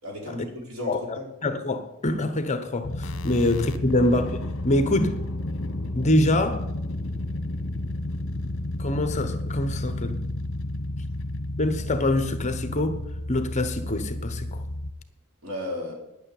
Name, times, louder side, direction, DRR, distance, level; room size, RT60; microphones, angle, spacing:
voice 1, 0.0-1.2 3.3-3.4 15.4-15.9, left 1 dB, 70° right, 4.3 m, -34 dB
voice 2, 0.9-4.3 4.6-5.2 5.9-6.7 8.8-10.2 11.6-13.0 13.3-14.6, left 1 dB, 30° left, 1.0 m, -25 dB
sound 1, 2.8-14.9, left 1 dB, 60° left, 1.0 m, -31 dB
10.0 x 8.7 x 8.5 m
head